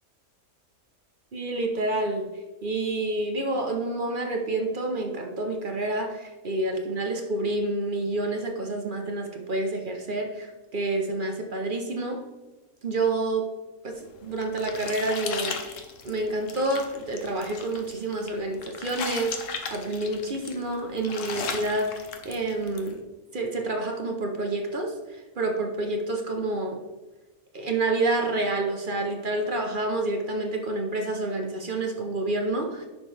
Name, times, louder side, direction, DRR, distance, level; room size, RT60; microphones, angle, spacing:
voice 1, 1.3-2.3 2.6-12.2 12.8-13.5 13.8-15.6 16.0-23.0 23.3-26.8 27.5-32.9, right 2 dB, 40° right, 3 dB, 0.9 m, -28 dB
sound 1, 14.0-22.9, left 5 dB, 65° left, 1.1 m, -37 dB
9.8 x 5.9 x 3.4 m, 1.2 s
omnidirectional pair, 1.5 m